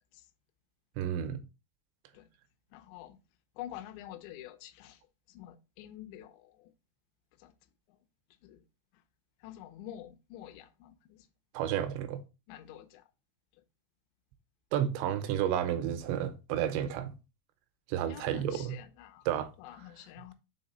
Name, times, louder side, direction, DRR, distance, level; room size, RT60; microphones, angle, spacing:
voice 1, 1.0-1.4 11.5-12.2 14.7-17.1 17.9-18.7 19.3-19.5, right 10 dB, 85° right, 2.9 m, -31 dB
voice 2, 2.7-3.2 3.6-5.0 5.3-6.7 7.4-7.5 7.9-8.0 8.4-8.6 8.9-9.0 9.4-11.3 12.5-13.1 13.5-13.6 18.1-19.3 19.6-20.3, left 12 dB, 85° left, 2.8 m, -48 dB
6.6 x 3.8 x 4.1 m
omnidirectional pair, 5.0 m